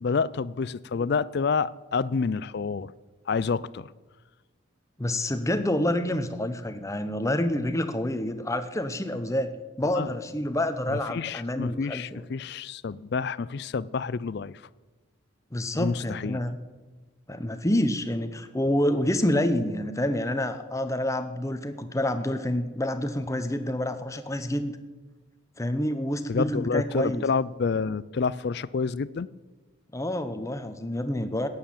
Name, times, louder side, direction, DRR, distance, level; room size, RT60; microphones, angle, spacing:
voice 1, 0.0-2.9 3.3-3.9 9.9-10.1 10.9-14.6 15.7-16.4 26.3-29.3, left 5 dB, 55° left, 0.4 m, -28 dB
voice 2, 5.0-9.5 9.8-12.2 15.5-16.6 17.3-24.7 25.6-27.2 29.9-31.5, left 1 dB, 15° left, 0.9 m, -28 dB
14.0 x 9.6 x 8.8 m
head